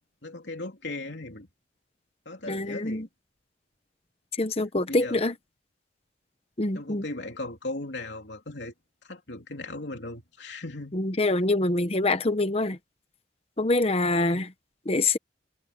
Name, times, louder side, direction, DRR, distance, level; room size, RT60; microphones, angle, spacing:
voice 1, 0.2-1.5 2.2-3.1 4.9-5.2 6.7-8.7 9.0-10.9, left 2 dB, 70° left, 3.1 m, -37 dB
voice 2, 2.5-3.1 4.4-5.3 6.6-7.0 10.9-12.8 13.6-14.5 14.9-15.2, left 2 dB, 30° left, 0.9 m, -25 dB
head